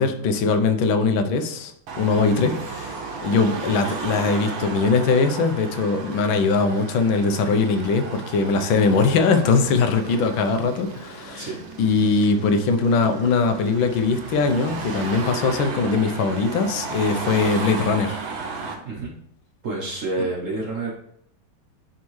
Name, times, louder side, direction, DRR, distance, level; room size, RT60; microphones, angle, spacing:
voice 1, 0.0-1.7 2.0-2.9 3.2-11.5 11.8-18.2, left 4 dB, 85° left, 7 dB, 1.5 m, -21 dB
Car passing by / Traffic noise roadway noise / Engine, 1.9-18.7, right 4 dB, 80° right, 1.8 m, -34 dB
voice 2, 19.6-20.9, right 3 dB, 50° right, -1 dB, 1.1 m, -28 dB
10.5 x 3.5 x 3.1 m, 0.72 s
omnidirectional pair, 2.1 m